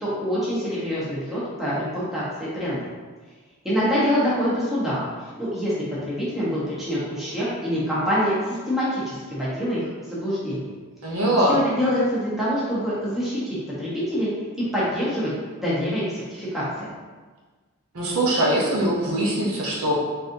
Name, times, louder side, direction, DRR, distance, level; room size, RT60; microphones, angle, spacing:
voice 1, 0.0-2.9 3.6-5.0 5.4-5.7 6.0-10.7 11.5-14.3 14.7-15.3 15.6-16.6, equal, ahead, -10 dB, 0.9 m, -25 dB
voice 2, 11.0-11.6 17.9-20.0, right 1 dB, 65° right, -5 dB, 0.8 m, -22 dB
4.2 x 2.6 x 2.6 m, 1.4 s
head